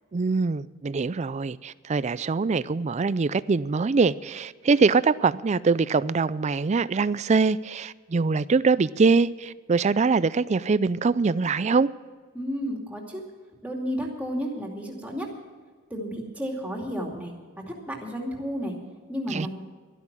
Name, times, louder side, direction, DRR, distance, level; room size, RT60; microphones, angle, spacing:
voice 1, 0.1-11.9 19.3-19.5, right 4 dB, 30° right, 17 dB, 0.4 m, -23 dB
voice 2, 12.3-13.2 13.6-15.3 15.9-18.7 19.1-19.5, equal, 5° right, 0 dB, 2.4 m, -32 dB
12.0 x 12.0 x 7.2 m, 1.5 s
head